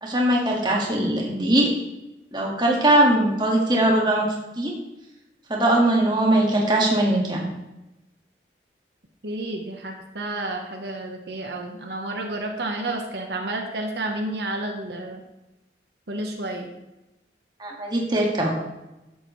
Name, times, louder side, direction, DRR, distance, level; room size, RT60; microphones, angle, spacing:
voice 1, 0.0-1.7 2.3-4.2 4.6-4.7 5.5-7.4 17.6-18.5, right 1 dB, 25° right, -1 dB, 1.7 m, -20 dB
voice 2, 9.2-15.2 16.1-16.7, right 2 dB, 70° right, 2 dB, 1.0 m, -30 dB
11.0 x 7.7 x 3.1 m, 0.98 s
head